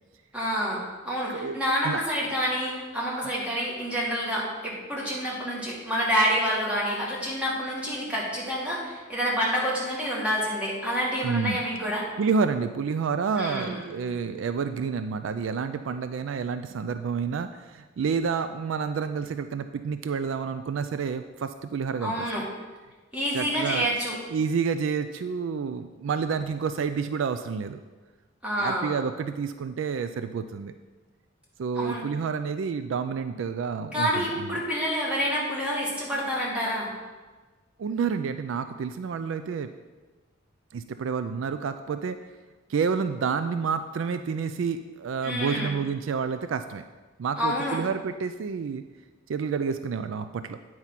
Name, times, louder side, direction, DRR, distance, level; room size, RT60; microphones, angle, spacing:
voice 1, 0.3-12.1 13.4-13.9 22.0-22.4 23.1-24.2 28.4-29.0 31.8-32.0 33.9-36.9 45.2-45.7 47.4-47.8, equal, 5° right, -6 dB, 2.1 m, -28 dB
voice 2, 11.2-11.6 12.2-22.3 23.3-23.9 24.3-27.8 28.6-30.7 31.6-34.6 37.8-39.7 40.7-42.2 42.7-46.8 47.2-48.8 49.3-50.6, right 5 dB, 65° right, 10 dB, 0.3 m, -29 dB
9.1 x 4.7 x 5.7 m, 1.3 s
head